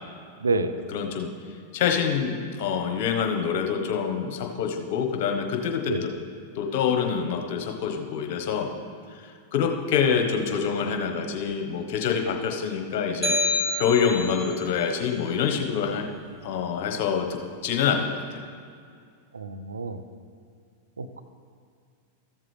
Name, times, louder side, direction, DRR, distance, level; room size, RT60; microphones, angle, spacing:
voice 1, 0.4-0.7 5.9-6.0 19.3-20.0 21.0-21.2, right 3 dB, 90° right, 10 dB, 0.5 m, -28 dB
voice 2, 0.9-1.3 1.7-6.1 6.5-8.7 9.5-13.4 13.7-16.1 16.4-18.4, left 7 dB, 60° left, 4 dB, 1.2 m, -26 dB
sound 1, 13.2-14.6, left 1 dB, ahead, 1.2 m, -27 dB
14.0 x 7.3 x 3.4 m, 2.3 s
hypercardioid pair, 100°, 0 cm